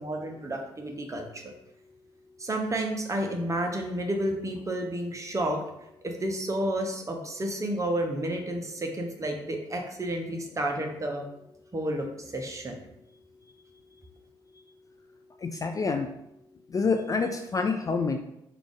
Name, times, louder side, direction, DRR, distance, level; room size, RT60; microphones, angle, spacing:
voice 1, 0.0-1.5 2.4-5.6 6.0-11.2 11.7-12.8, right 1 dB, 25° right, 2 dB, 0.7 m, -31 dB
voice 2, 15.4-16.1 16.7-18.2, left 4 dB, 25° left, 5 dB, 0.3 m, -27 dB
3.3 x 2.4 x 3.7 m, 0.83 s
figure-of-eight pair, 40°, 13 cm